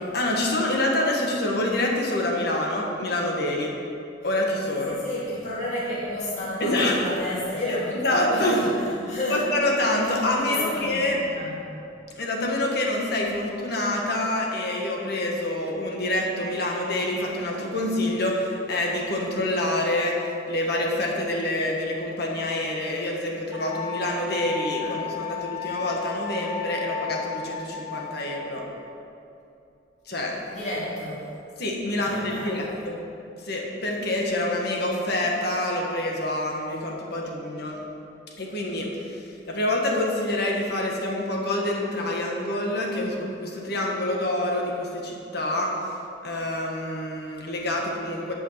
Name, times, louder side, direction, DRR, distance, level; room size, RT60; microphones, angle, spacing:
voice 1, 0.1-3.7 4.2-5.0 6.6-7.0 8.0-8.6 9.3-11.2 12.2-28.6 30.1-30.3 31.6-33.0 33.4-37.8 38.4-45.7 46.2-48.3, left 1 dB, 55° left, -1 dB, 1.5 m, -26 dB
voice 2, 4.8-9.6 10.0-11.6 24.8-25.0 30.5-31.3 32.0-32.7, left 1 dB, 40° left, -8 dB, 2.2 m, -31 dB
Wind instrument woodwind instrument, 23.5-28.5, left 7 dB, ahead, 1.3 m, -34 dB
10.5 x 5.6 x 5.7 m, 2.7 s
head